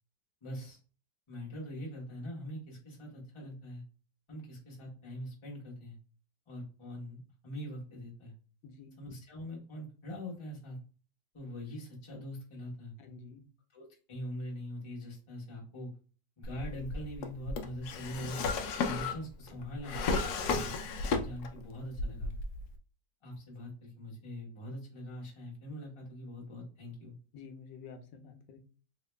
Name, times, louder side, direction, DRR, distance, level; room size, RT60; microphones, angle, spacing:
voice 1, 0.4-0.8 1.3-3.8 4.3-6.0 6.5-8.3 9.0-10.8 11.3-12.9 13.7-15.9 16.4-18.4 18.8-20.0 20.4-20.8 21.2-22.3 23.2-27.1, equal, 20° left, -3 dB, 0.9 m, -43 dB
voice 2, 8.6-9.0 13.0-13.4 27.3-28.6, left 5 dB, 90° left, 6 dB, 1.3 m, -50 dB
Drawer open or close, 16.4-21.6 21.9-22.7, left 4 dB, 70° left, 1.0 m, -34 dB
3.0 x 2.8 x 3.2 m, 0.38 s
omnidirectional pair, 1.9 m